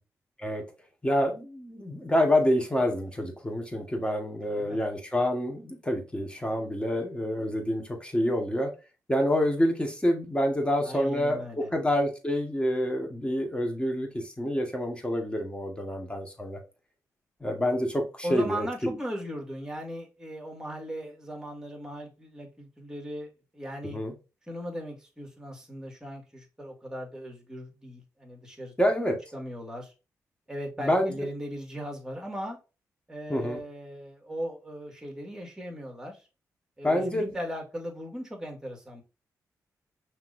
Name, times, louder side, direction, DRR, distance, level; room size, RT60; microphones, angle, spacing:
voice 1, 1.0-8.7 9.1-16.6 17.4-19.0 23.8-24.1 28.8-29.2 30.8-31.2 33.3-33.6 36.8-37.3, equal, 15° left, 1.8 m, -27 dB
voice 2, 4.4-4.8 10.8-11.7 18.2-24.0 24.5-28.7 29.0-29.9 30.5-32.6 33.1-36.2 36.8-39.0, equal, 10° right, 2.2 m, -38 dB
5.8 x 3.3 x 2.7 m
supercardioid pair, 45°, 7 cm